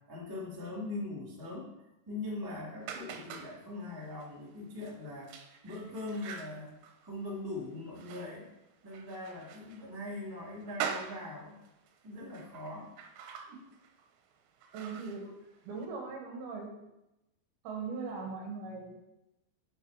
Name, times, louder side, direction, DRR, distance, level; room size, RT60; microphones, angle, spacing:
voice 1, 0.1-1.7 2.1-5.3 5.6-6.8 7.0-8.5 8.8-11.6 12.0-12.9, left 2 dB, 30° right, -5 dB, 0.4 m, -41 dB
sound 1, 2.8-15.9, right 7 dB, 85° right, 2.9 m, -45 dB
voice 2, 14.7-15.3 15.6-16.7 17.6-19.1, right 4 dB, 70° right, 0 dB, 3.3 m, -40 dB
9.1 x 4.8 x 4.8 m, 0.92 s
omnidirectional pair, 4.7 m